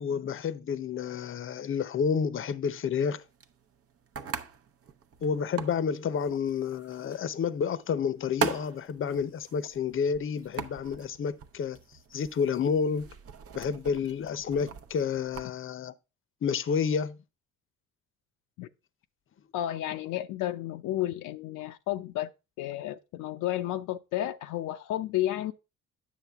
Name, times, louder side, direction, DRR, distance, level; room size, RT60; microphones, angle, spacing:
voice 1, 0.0-3.2 5.2-11.8 12.1-13.1 13.5-15.9 16.4-17.2, left 6 dB, 45° left, 0.7 m, -30 dB
sound 1, 3.0-15.5, right 7 dB, 50° right, 0.8 m, -41 dB
voice 2, 19.5-22.3 22.6-25.5, left 13 dB, 85° left, 0.6 m, -32 dB
9.2 x 6.5 x 3.5 m
cardioid pair, 90°, 30 cm